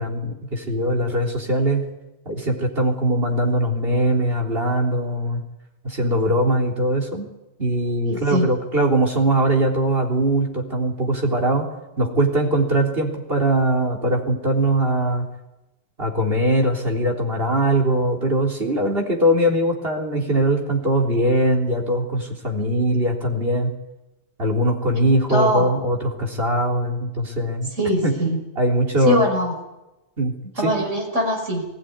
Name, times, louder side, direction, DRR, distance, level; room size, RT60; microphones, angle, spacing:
voice 1, 0.0-1.9 2.3-5.4 5.8-7.3 7.6-11.7 12.0-15.3 16.0-23.7 24.4-27.7 28.0-28.1 28.6-29.2 30.2-30.3 30.6-30.9, right 1 dB, 55° right, 0 dB, 4.0 m, -21 dB
voice 2, 8.0-8.5 25.3-25.7 27.8-28.4 29.0-29.5 30.6-31.7, equal, 85° right, 2 dB, 5.5 m, -22 dB
20.5 x 16.5 x 9.6 m, 0.97 s
omnidirectional pair, 1.2 m